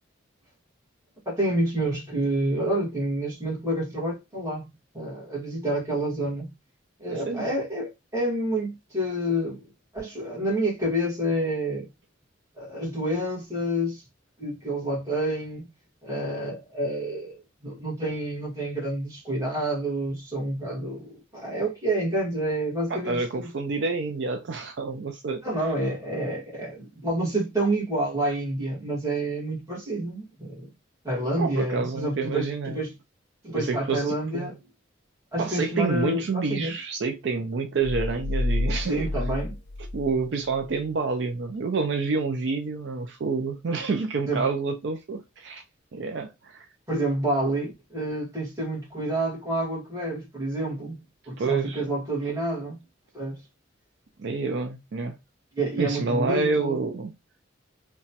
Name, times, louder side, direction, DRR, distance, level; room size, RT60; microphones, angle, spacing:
voice 1, 1.2-6.5 7.0-11.9 12.6-14.0 14.4-15.7 16.0-23.5 25.4-30.7 31.0-32.9 33.4-34.6 35.3-36.8 38.9-39.6 44.3-44.4 46.9-52.8 53.1-53.4 55.5-56.8, right 1 dB, 15° right, 1.3 m, -28 dB
voice 2, 7.1-7.5 22.9-25.4 31.4-32.8 33.5-34.5 35.4-39.1 39.9-45.6 45.9-46.6 51.4-51.8 54.2-55.1 55.8-57.1, right 4 dB, 60° right, 0.4 m, -28 dB
sound 1, 37.8-40.8, left 2 dB, 65° left, 0.5 m, -29 dB
2.9 x 2.2 x 2.7 m
head